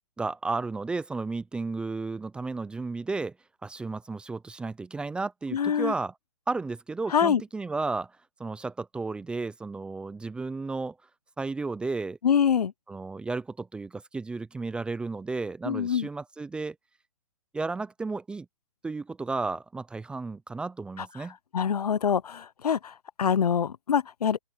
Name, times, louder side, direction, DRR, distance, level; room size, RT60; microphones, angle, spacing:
voice 1, 0.2-3.4 3.6-6.1 6.5-8.1 8.4-11.0 11.4-12.2 12.9-16.8 17.5-18.5 18.8-21.3, right 3 dB, 5° right, 0.6 m, -33 dB
voice 2, 5.5-5.9 7.1-7.4 12.2-12.7 15.6-16.1 21.0-21.1 21.5-24.4, left 7 dB, 75° left, 0.8 m, -25 dB
open air
hypercardioid pair, 140°, 20 cm